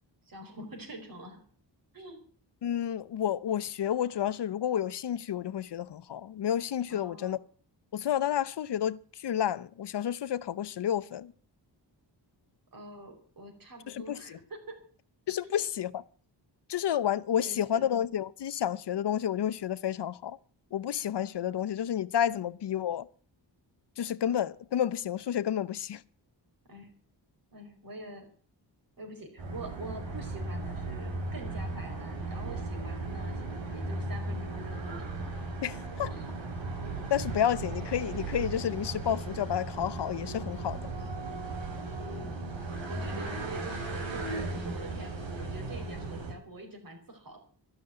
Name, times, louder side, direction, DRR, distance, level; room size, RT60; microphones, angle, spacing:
voice 1, 0.3-1.4 1.9-2.2 6.9-7.4 12.7-14.8 15.4-15.6 17.3-17.9 26.7-26.9 27.5-28.3 29.0-33.4 33.7-35.2 35.7-36.3 42.0-42.3 42.9-47.4, right 1 dB, 50° right, 4.8 m, -45 dB
voice 2, 2.6-7.4 7.9-11.3 13.9-14.4 15.3-16.0 16.7-20.4 20.7-23.1 24.0-26.0 35.6-36.1 37.1-40.8, left 10 dB, 70° left, 0.8 m, -30 dB
sound 1, 29.4-46.3, right 2 dB, 90° right, 4.2 m, -36 dB
13.0 x 11.5 x 7.7 m
wide cardioid pair, 145°, 44 cm